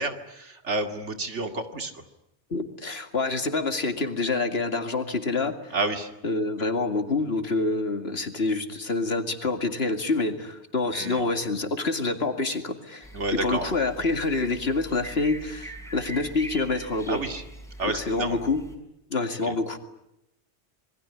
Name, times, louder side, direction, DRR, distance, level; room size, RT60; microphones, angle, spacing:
voice 1, 0.0-2.0 5.7-6.1 10.9-11.2 13.1-13.7 17.1-17.4 17.8-18.4 19.4-19.5, right 2 dB, 85° right, 6 dB, 2.6 m, -30 dB
voice 2, 2.5-5.7 6.2-17.2 17.8-18.6 19.1-19.8, left 3 dB, 60° left, 7 dB, 2.5 m, -27 dB
sound 1, 13.0-18.8, right 1 dB, ahead, 5.6 m, -42 dB
27.0 x 22.0 x 9.8 m, 0.85 s
omnidirectional pair, 1.2 m